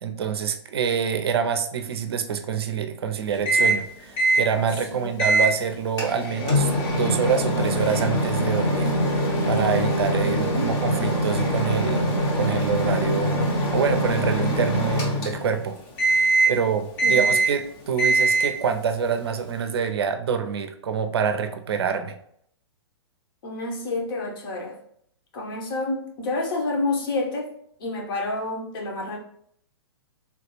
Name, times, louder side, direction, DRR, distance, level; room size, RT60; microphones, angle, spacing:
voice 1, 0.0-13.4 13.7-22.2, right 7 dB, 60° right, 8 dB, 0.4 m, -26 dB
Microwave oven, 3.5-3.9 4.2-4.5 5.2-5.5 6.0-15.6 16.0-16.6 17.0-17.6 18.0-18.6, right 1 dB, 30° left, 0.8 m, -23 dB
voice 2, 10.2-10.7 17.0-17.4 23.4-24.8 25.3-27.5 27.8-29.2, left 2 dB, 50° left, 1 dB, 1.0 m, -29 dB
3.5 x 2.4 x 3.0 m, 0.67 s
figure-of-eight pair, 115°, 15 cm